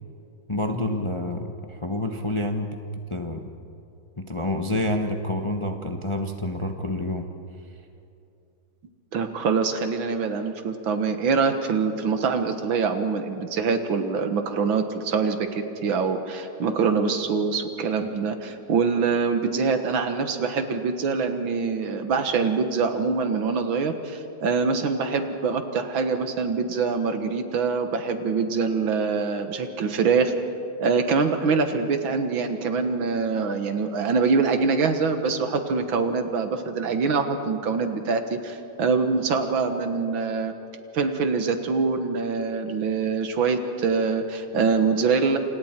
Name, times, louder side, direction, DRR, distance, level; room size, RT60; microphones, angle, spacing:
voice 1, 0.5-2.8 3.1-3.5 4.2-7.3, left 1 dB, 25° left, 5 dB, 0.7 m, -28 dB
voice 2, 9.1-30.3 30.8-40.5 40.9-45.4, right 5 dB, 80° right, 7 dB, 2.2 m, -24 dB
28.5 x 27.0 x 4.5 m, 2.7 s
omnidirectional pair, 2.1 m